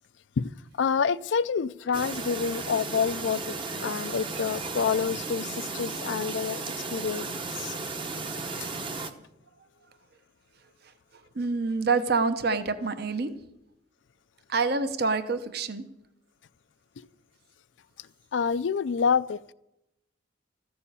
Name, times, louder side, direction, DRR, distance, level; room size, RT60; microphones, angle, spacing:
voice 1, 0.4-7.8 8.6-8.7 17.0-17.1 18.0-19.5, left 6 dB, 75° left, 0.4 m, -28 dB
Chirp tweet, 1.9-9.1, right 3 dB, 25° right, 0.8 m, -35 dB
voice 2, 11.4-13.3 14.5-15.8, right 4 dB, 55° right, 0.9 m, -26 dB
14.0 x 7.0 x 8.4 m
head